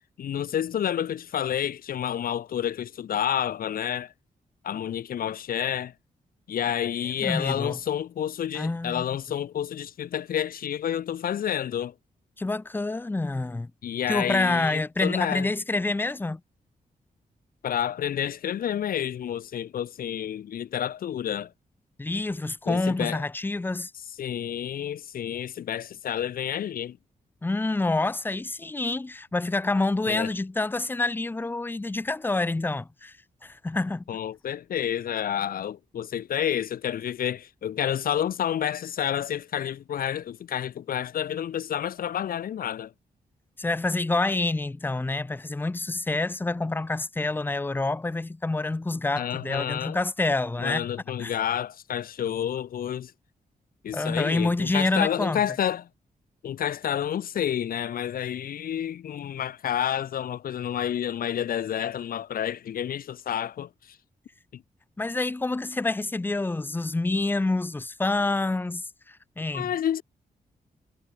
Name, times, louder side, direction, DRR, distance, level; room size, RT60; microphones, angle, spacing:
voice 1, 0.2-4.1 4.6-5.9 6.5-11.9 13.8-15.5 17.6-21.5 22.7-23.2 24.2-27.0 30.1-30.3 34.1-42.9 49.2-50.0 50.6-53.1 53.8-55.9 56.4-64.0 64.5-64.6 69.5-70.0, left 10 dB, 80° left, 1.1 m, -29 dB
voice 2, 7.2-7.8 8.5-9.1 12.4-13.7 14.1-16.4 22.0-23.9 27.4-33.2 33.4-34.0 43.6-50.9 51.2-51.3 53.9-55.4 65.0-69.7, left 2 dB, 15° left, 1.1 m, -27 dB
wide cardioid pair, 170°, 15 cm